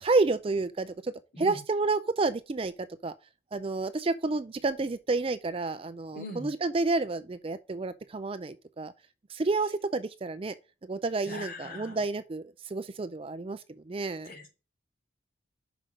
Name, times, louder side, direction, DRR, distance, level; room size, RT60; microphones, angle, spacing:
voice 1, 0.0-3.1 3.5-8.9 9.3-10.5 10.9-14.3, right 3 dB, 30° right, 0.4 m, -30 dB
voice 2, 6.1-6.5 11.3-12.0 14.2-14.5, left 1 dB, 45° left, 2.9 m, -41 dB
5.9 x 5.0 x 5.0 m
head